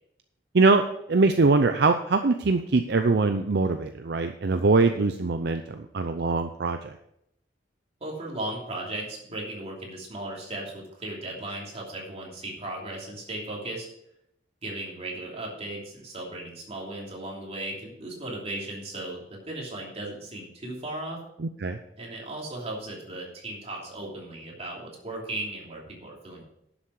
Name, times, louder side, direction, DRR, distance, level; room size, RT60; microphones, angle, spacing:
voice 1, 0.5-7.0 21.4-21.8, right 3 dB, 65° right, 7 dB, 0.6 m, -23 dB
voice 2, 8.0-13.9 14.6-21.2 22.0-26.4, right 1 dB, 35° right, -2 dB, 3.0 m, -36 dB
11.5 x 7.2 x 4.8 m, 0.78 s
head